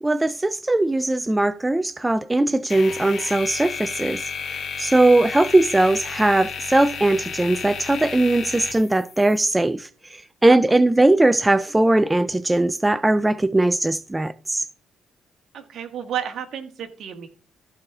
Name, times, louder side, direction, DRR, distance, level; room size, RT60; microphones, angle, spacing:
voice 1, 0.0-14.7, right 2 dB, 15° right, 0.4 m, -20 dB
sound 1, 2.7-9.5, left 6 dB, 55° left, 2.1 m, -33 dB
voice 2, 15.5-17.3, right 9 dB, 65° right, 1.6 m, -32 dB
14.0 x 4.8 x 3.6 m
cardioid pair, 90°, 0 cm